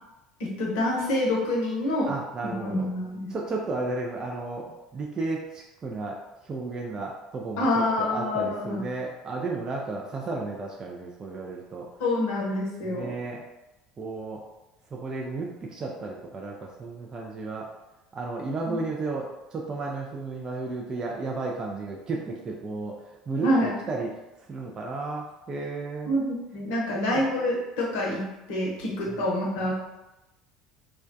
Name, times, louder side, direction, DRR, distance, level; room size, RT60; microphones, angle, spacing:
voice 1, 0.4-2.2 2.4-3.3 7.6-8.8 12.0-13.1 18.7-18.8 23.4-23.8 26.1-28.2 28.5-29.7, left 1 dB, 60° left, -3 dB, 0.7 m, -27 dB
voice 2, 2.1-2.9 3.3-6.2 6.4-7.7 8.0-11.9 12.8-13.4 14.0-14.4 14.9-17.7 18.1-22.9 23.3-24.1 24.5-26.1 26.9-27.2 29.1-29.2, right 3 dB, 30° right, -2 dB, 0.4 m, -33 dB
2.2 x 2.1 x 2.5 m, 0.98 s
figure-of-eight pair, 65°, 3 cm